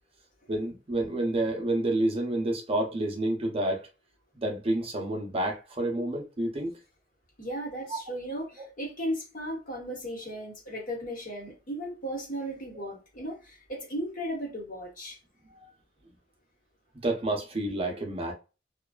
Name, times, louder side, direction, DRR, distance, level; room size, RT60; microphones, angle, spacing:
voice 1, 0.5-3.9 4.3-6.8 7.9-8.0 8.6-8.7 15.6-15.7 17.0-18.3, right 1 dB, 35° right, 0.6 m, -29 dB
voice 2, 7.4-15.2, equal, 50° left, 1.1 m, -36 dB
2.6 x 2.3 x 2.3 m
head